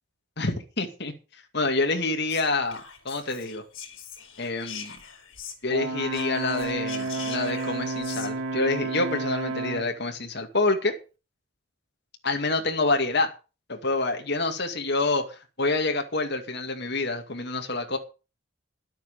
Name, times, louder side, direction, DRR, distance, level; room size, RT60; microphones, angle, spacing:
voice 1, 0.4-1.1 1.5-3.6 4.4-4.9 5.6-10.9 12.2-13.3 13.7-18.0, left 3 dB, 50° left, 4 dB, 2.3 m, -27 dB
Whispering, 2.3-5.8 6.1-8.3, left 7 dB, 70° left, 4.6 m, -42 dB
Brass instrument, 5.7-9.9, right 3 dB, 90° right, 2.4 m, -31 dB
11.5 x 9.0 x 6.8 m, 0.33 s
head